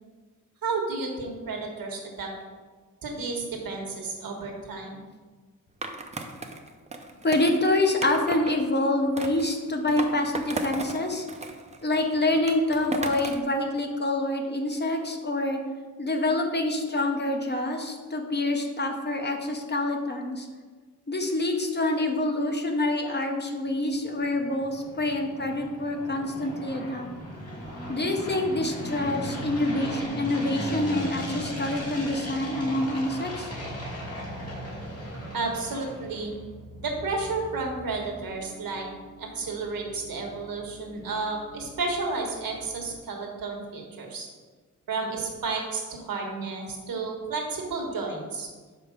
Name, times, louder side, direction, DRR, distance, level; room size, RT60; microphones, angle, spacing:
voice 1, 0.6-2.3 3.0-5.0 35.3-36.3 36.8-38.8 39.2-44.3 44.9-48.5, right 3 dB, 85° right, 1 dB, 1.4 m, -32 dB
Skateboard, 5.8-8.5 9.2-11.0 11.3-13.5, right 2 dB, 20° right, 0.5 m, -35 dB
voice 2, 7.2-11.3 11.8-15.6 16.0-20.5 21.1-27.1 27.9-33.5, left 2 dB, 30° left, 3 dB, 0.8 m, -26 dB
sound 1, 24.1-36.4, equal, 45° left, 1.7 m, -37 dB
sound 2, 30.6-43.0, equal, 70° left, 2.0 m, -47 dB
5.2 x 4.6 x 6.0 m, 1.4 s
wide cardioid pair, 135°, 34 cm